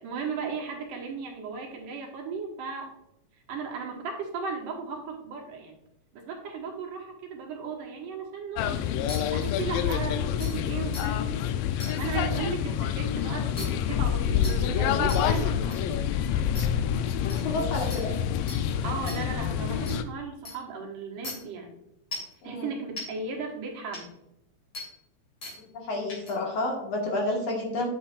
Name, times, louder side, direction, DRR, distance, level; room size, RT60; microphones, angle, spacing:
voice 1, 0.0-2.9 3.5-5.7 6.1-8.9 9.3-11.2 12.0-16.0 18.8-21.7 22.4-24.1, right 5 dB, 75° right, 1 dB, 2.9 m, -36 dB
sound 1, 8.6-20.0, left 9 dB, 90° left, 2.3 m, -27 dB
sound 2, 9.1-9.2 9.9-10.0 10.4-10.5 10.9-11.0 11.8-11.9 13.6-13.7 14.4-14.6 15.1-15.2 15.7-15.8 16.6-16.7 17.3-17.4 17.9-18.0 18.5-18.6 19.1-19.2 19.9-20.0 20.5-20.6 21.2-21.3 22.1-22.3 23.0-23.1 23.9-24.0 24.7-24.9 25.4-25.6 26.1-26.3, left 2 dB, 40° left, 3.1 m, -37 dB
voice 2, 17.2-18.1 22.4-22.7 25.7-27.9, left 2 dB, 55° left, -1 dB, 2.4 m, -30 dB
9.8 x 8.2 x 2.5 m, 0.84 s
omnidirectional pair, 3.9 m